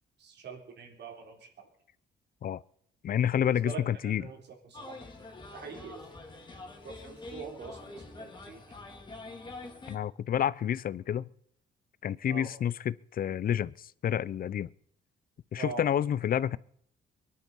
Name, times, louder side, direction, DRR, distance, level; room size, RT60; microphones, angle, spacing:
voice 1, 0.2-1.7 3.4-5.0 5.5-6.1 6.8-8.6 12.3-12.5 15.6-15.9, right 5 dB, 65° right, 3.8 m, -44 dB
voice 2, 3.0-4.2 9.9-11.3 12.0-14.7 15.5-16.6, left 9 dB, 50° left, 0.6 m, -29 dB
sound 1, 4.7-10.0, left 2 dB, 25° left, 2.6 m, -45 dB
23.5 x 11.0 x 5.5 m
cardioid pair, 120°, 19 cm